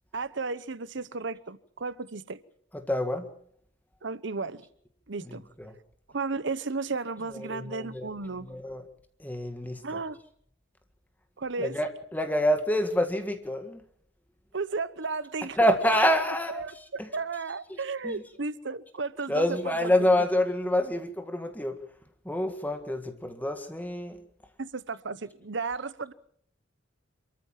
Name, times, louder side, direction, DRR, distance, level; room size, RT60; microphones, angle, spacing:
voice 1, 0.1-2.4 4.0-4.6 5.1-5.4 6.1-8.5 9.8-10.2 11.4-11.8 14.5-16.0 16.5-20.1 24.6-26.1, right 4 dB, 65° right, 16 dB, 0.9 m, -34 dB
voice 2, 2.9-3.3 5.6-5.7 7.3-8.1 8.5-8.8 9.2-10.0 11.6-13.8 15.6-16.6 17.0-17.1 18.0-18.2 19.3-21.7 22.3-24.2, left 1 dB, 10° left, 6 dB, 1.8 m, -27 dB
28.0 x 14.0 x 7.5 m, 0.64 s
head